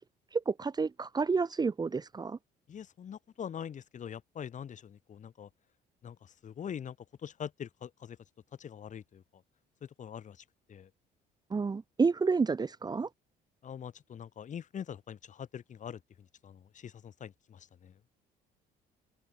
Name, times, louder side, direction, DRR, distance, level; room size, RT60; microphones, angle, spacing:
voice 1, 0.3-2.4 11.5-13.1, right 4 dB, 25° right, 1.4 m, -30 dB
voice 2, 2.7-5.5 6.0-7.0 7.2-8.2 8.6-9.2 9.8-10.9 13.6-17.9, left 8 dB, 45° left, 7.5 m, -44 dB
open air
cardioid pair, 110°, 17 cm